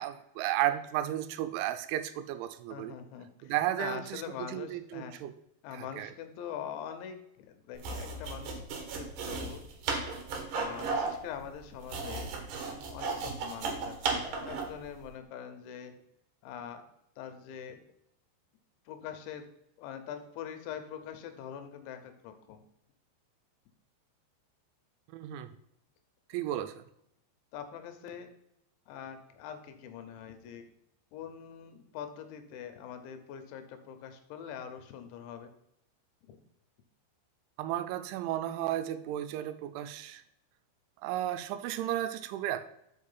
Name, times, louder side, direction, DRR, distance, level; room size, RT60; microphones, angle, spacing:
voice 1, 0.0-3.0 3.4-4.2 4.5-5.3 5.7-6.1 25.1-25.6 26.3-26.8 37.6-40.2 41.0-42.6, right 13 dB, 85° right, 10 dB, 2.9 m, -33 dB
voice 2, 2.7-5.1 5.6-8.6 9.0-9.6 10.5-12.3 12.9-16.0 16.4-16.9 17.2-17.8 18.9-19.5 19.8-22.6 27.5-28.3 28.9-30.6 31.1-35.5 36.3-36.4, left 8 dB, 80° left, 8 dB, 3.1 m, -43 dB
sound 1, 7.8-14.8, right 4 dB, 70° right, 2.1 m, -35 dB
6.5 x 5.3 x 5.5 m, 0.77 s
omnidirectional pair, 5.4 m